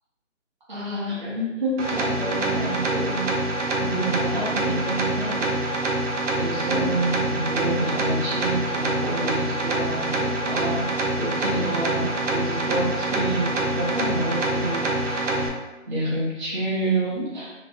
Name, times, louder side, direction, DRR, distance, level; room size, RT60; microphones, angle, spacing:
voice 1, 0.7-3.4 3.8-5.9 6.3-10.9 11.2-15.3 15.9-17.5, right 1 dB, 40° right, -8 dB, 0.8 m, -28 dB
sound 1, 1.8-15.5, right 2 dB, 65° right, 0.7 m, -26 dB
3.0 x 2.2 x 2.8 m, 1.0 s
figure-of-eight pair, 170°, 39 cm